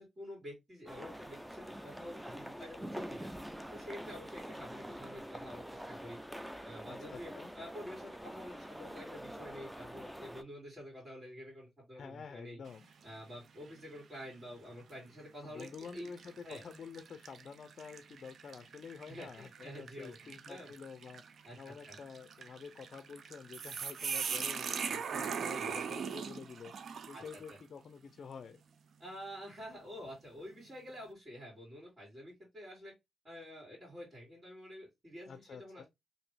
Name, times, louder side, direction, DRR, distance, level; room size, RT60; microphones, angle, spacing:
voice 1, 0.0-3.3 3.7-6.2 6.6-12.6 13.0-16.1 16.4-16.6 19.0-20.7 21.4-22.0 25.1-25.9 27.1-27.6 29.0-32.9 33.2-35.8, equal, 35° right, 2.1 m, -49 dB
sound 1, 0.9-10.4, equal, 5° right, 0.4 m, -46 dB
voice 2, 6.9-7.5 11.9-12.9 15.4-28.6 35.3-35.8, left 6 dB, 60° left, 0.4 m, -49 dB
sound 2, 12.7-13.1 13.7-13.8 14.7-15.0 15.6-27.6, right 6 dB, 70° right, 0.4 m, -41 dB
2.9 x 2.6 x 3.2 m
cardioid pair, 75°, 0 cm